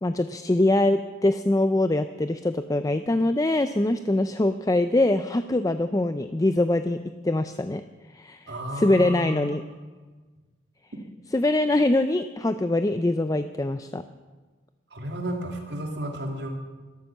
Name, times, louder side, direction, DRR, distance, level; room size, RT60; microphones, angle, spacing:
voice 1, 0.0-7.0 7.2-7.8 8.1-9.6 11.3-14.0, left 2 dB, 20° left, 10 dB, 0.4 m, -23 dB
voice 2, 8.5-9.8 14.9-16.5, right 1 dB, 75° right, 2 dB, 2.5 m, -33 dB
13.0 x 12.5 x 7.3 m, 1.3 s
head